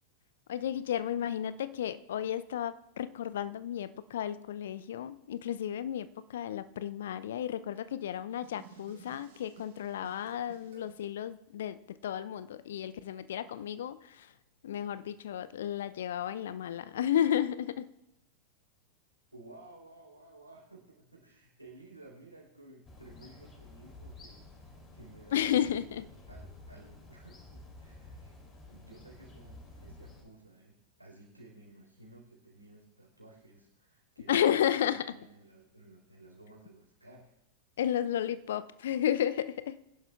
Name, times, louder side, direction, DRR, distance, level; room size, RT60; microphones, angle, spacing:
voice 1, 0.5-14.3 14.6-17.9 25.3-26.0 34.3-35.1 37.8-39.8, left 10 dB, 60° left, 15 dB, 0.5 m, -32 dB
sound 1, 8.4-11.1, right 7 dB, 60° right, 3.9 m, -55 dB
voice 2, 19.3-28.3 28.7-34.6 34.9-37.3, right 2 dB, 85° right, -3 dB, 3.9 m, -55 dB
sound 2, 22.8-30.2, left 2 dB, 25° left, 3.0 m, -51 dB
23.0 x 11.0 x 2.4 m, 0.89 s
figure-of-eight pair, 90°, 0 cm